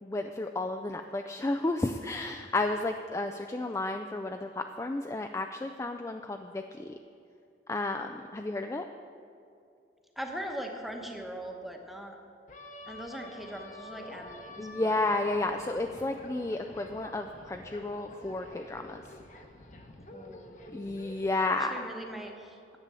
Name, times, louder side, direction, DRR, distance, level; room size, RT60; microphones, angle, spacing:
voice 1, 0.0-6.9 7.7-8.8 14.6-19.0 20.7-21.7, left 2 dB, 15° left, 5 dB, 0.3 m, -32 dB
voice 2, 10.2-12.2 12.9-15.0 20.1-21.0 21.7-22.8, right 1 dB, ahead, 2 dB, 1.0 m, -41 dB
sound 1, 12.5-21.3, left 1 dB, 45° left, 0.9 m, -47 dB
10.5 x 8.3 x 6.8 m, 2.6 s
head